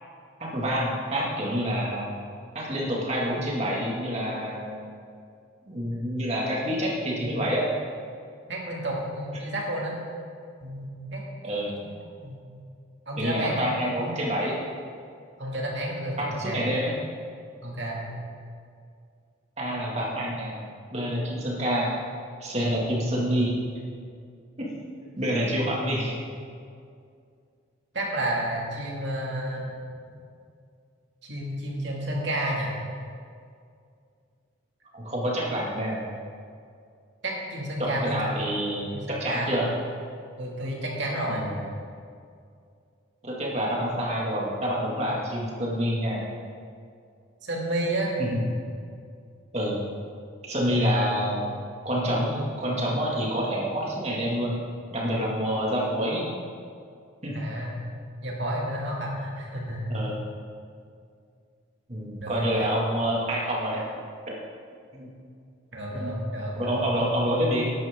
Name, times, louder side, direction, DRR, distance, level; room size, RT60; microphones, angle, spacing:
voice 1, 0.4-2.1 2.5-4.7 5.7-7.7 9.3-9.4 11.4-11.7 13.2-14.6 16.2-17.0 19.6-20.6 20.9-21.9 22.4-23.6 24.6-24.7 25.0-26.1 34.9-36.1 37.8-39.7 41.3-41.5 43.2-46.2 48.2-48.4 49.5-49.8 50.4-51.4 51.8-54.6 54.9-56.2 57.2-57.4 59.9-60.2 61.9-63.9 64.9-65.1 65.9-66.2 66.5-67.7, equal, 35° right, -4 dB, 2.3 m, -27 dB
voice 2, 8.5-10.0 10.6-11.5 12.2-12.4 13.1-13.7 15.4-16.6 17.6-18.1 27.9-29.7 31.2-32.7 37.2-38.2 38.9-39.5 40.4-41.4 47.4-48.1 57.3-57.7 58.2-59.9 62.2-62.7 65.7-66.8, right 1 dB, 65° right, -3 dB, 2.5 m, -31 dB
13.5 x 10.5 x 3.8 m, 2.3 s
head